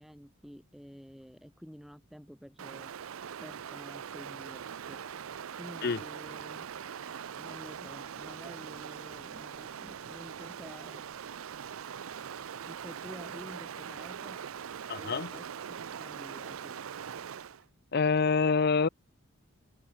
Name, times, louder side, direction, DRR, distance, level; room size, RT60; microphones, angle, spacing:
voice 1, 0.0-2.9 3.4-5.0 5.6-6.6 7.4-11.1 12.7-14.4 15.0-16.8, equal, ahead, 3.9 m, -50 dB
Stream, 2.6-17.6, right 8 dB, 75° right, 0.5 m, -42 dB
voice 2, 14.9-15.3 17.9-18.9, left 5 dB, 50° left, 0.5 m, -26 dB
head